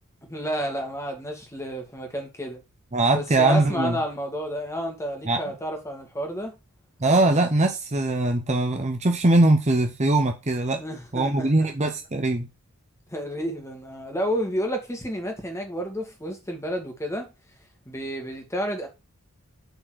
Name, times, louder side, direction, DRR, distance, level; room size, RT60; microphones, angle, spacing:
voice 1, 0.3-2.6 3.1-6.6 10.8-11.7 13.1-17.3 17.9-18.9, equal, 15° left, 2.0 m, -30 dB
voice 2, 2.9-4.0 5.2-5.4 7.0-10.8 11.1-12.5, right 2 dB, 30° right, 0.8 m, -21 dB
7.9 x 4.4 x 6.2 m
head